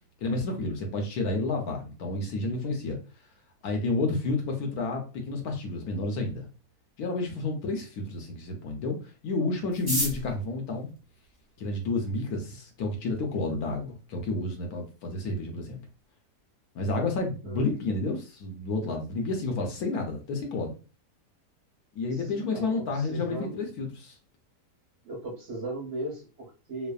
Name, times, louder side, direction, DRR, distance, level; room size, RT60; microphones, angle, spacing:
voice 1, 0.2-3.0 3.6-6.5 7.0-9.0 9.2-10.9 11.6-15.8 16.7-20.7 21.9-24.1, left 3 dB, 70° left, 2 dB, 1.1 m, -30 dB
sound 1, 9.7-11.9 12.7-12.8 13.1-13.2 13.4-13.9 14.2-14.3 14.5-14.9 15.3-15.4 15.8-16.1, equal, 15° right, 0.7 m, -34 dB
voice 2, 22.3-22.7 23.0-23.6 25.0-26.9, right 2 dB, 50° right, -2 dB, 1.2 m, -37 dB
3.2 x 2.0 x 2.3 m, 0.34 s
omnidirectional pair, 1.8 m